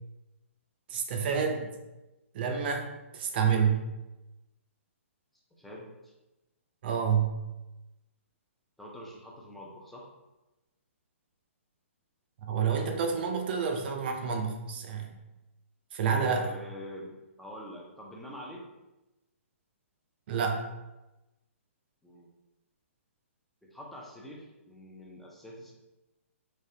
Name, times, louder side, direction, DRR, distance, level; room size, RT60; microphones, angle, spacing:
voice 1, 0.9-1.7 2.3-2.9 3.1-3.8 6.8-7.4 12.5-15.2 15.9-16.4 20.3-20.7, right 6 dB, 45° right, 3 dB, 0.5 m, -28 dB
voice 2, 5.6-6.1 8.8-10.1 16.1-18.7 22.0-22.3 23.6-25.7, left 1 dB, ahead, -3 dB, 0.5 m, -45 dB
3.3 x 3.2 x 2.7 m, 1.0 s
hypercardioid pair, 140°, 7 cm